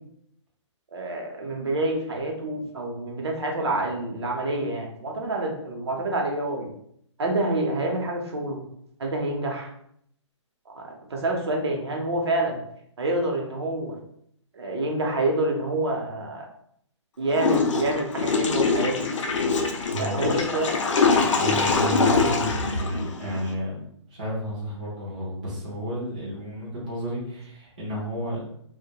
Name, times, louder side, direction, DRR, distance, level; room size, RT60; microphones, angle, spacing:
voice 1, 0.9-6.7 7.2-8.6 9.0-9.7 10.7-12.6 13.0-13.9 14.5-16.5 17.2-19.1 20.0-20.7 21.5-21.6, right 2 dB, 60° right, 0 dB, 0.7 m, -27 dB
Water / Toilet flush, 17.3-23.5, left 4 dB, 75° left, 0.4 m, -24 dB
voice 2, 19.9-20.5 21.2-23.8 24.1-28.4, equal, 15° right, -8 dB, 0.4 m, -31 dB
2.1 x 2.1 x 2.7 m, 0.71 s
hypercardioid pair, 175°, 16 cm